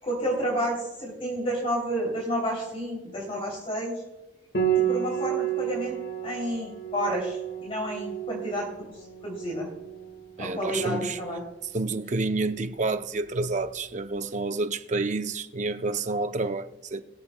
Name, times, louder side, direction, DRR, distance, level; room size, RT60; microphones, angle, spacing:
voice 1, 0.0-3.9 4.7-6.0 6.2-8.9 9.2-9.7 10.4-11.4, equal, 30° left, 3.0 m, -30 dB
Piano, 4.5-13.9, right 9 dB, 65° left, 1.7 m, -32 dB
voice 2, 10.4-11.2 11.7-17.0, right 3 dB, 40° right, 0.6 m, -29 dB
22.0 x 7.7 x 2.2 m
head